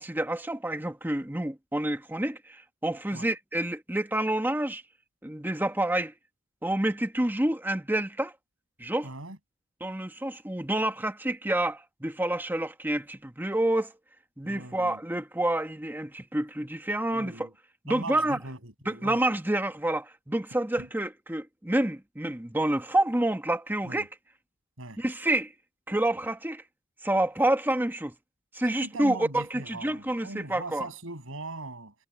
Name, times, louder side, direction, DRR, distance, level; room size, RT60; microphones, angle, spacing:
voice 1, 0.0-4.8 5.2-6.1 6.6-8.3 8.8-9.1 9.8-13.9 14.4-17.5 17.8-18.4 18.8-24.1 25.0-25.5 25.9-26.6 27.0-28.1 28.5-30.9, right 1 dB, 10° right, 1.2 m, -28 dB
voice 2, 9.0-9.4 14.4-15.0 17.1-17.5 17.9-19.2 20.8-20.9 23.8-24.1 24.8-25.0 28.8-31.9, right 2 dB, 70° right, 7.1 m, -40 dB
head